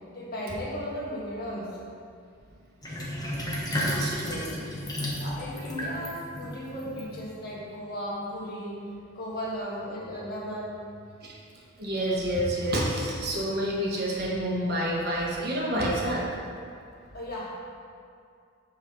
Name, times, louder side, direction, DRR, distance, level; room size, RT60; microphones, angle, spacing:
voice 1, 0.1-1.8 5.2-8.9 9.1-10.7 17.1-17.5, equal, 45° left, -5 dB, 1.7 m, -35 dB
Sink (filling or washing), 2.8-7.6, equal, 20° left, 1.1 m, -33 dB
voice 2, 3.7-4.6 11.2-11.4 11.8-16.3, right 1 dB, 50° right, -4 dB, 1.4 m, -29 dB
5.4 x 5.3 x 6.3 m, 2.4 s
head